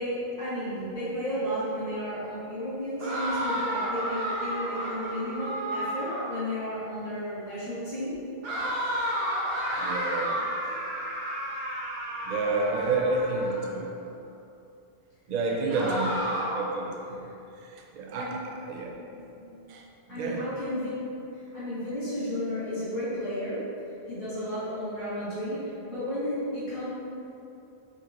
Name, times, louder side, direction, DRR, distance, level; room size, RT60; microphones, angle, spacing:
voice 1, 0.0-8.2 10.6-10.7 15.5-16.1 17.2-17.3 18.1-18.5 18.9-19.7 20.1-20.9 21.3-23.7 24.1-26.9, equal, 60° left, -12 dB, 1.6 m, -33 dB
sound 1, 3.0-6.4 8.4-13.7 15.7-16.7, equal, 70° right, 1.1 m, -31 dB
voice 2, 9.8-10.4 12.3-13.9 15.3-16.2 16.6-17.2 17.9-18.4 18.7-18.9 19.7-19.8 20.1-20.5, right 3 dB, 55° right, 0 dB, 0.5 m, -29 dB
4.8 x 3.1 x 2.5 m, 2.7 s
omnidirectional pair, 1.0 m